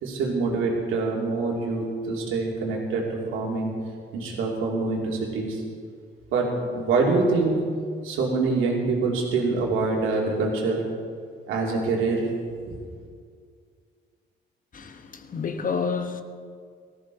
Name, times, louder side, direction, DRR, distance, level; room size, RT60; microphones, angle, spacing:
voice 1, 0.0-3.7 4.1-5.6 6.3-7.6 8.0-10.8 11.5-12.3 12.7-12.8, right 3 dB, 90° right, 2.8 m, -25 dB
voice 2, 14.7-16.2, left 5 dB, 45° left, 1.1 m, -29 dB
18.5 x 14.0 x 4.1 m
cardioid pair, 90°, 20 cm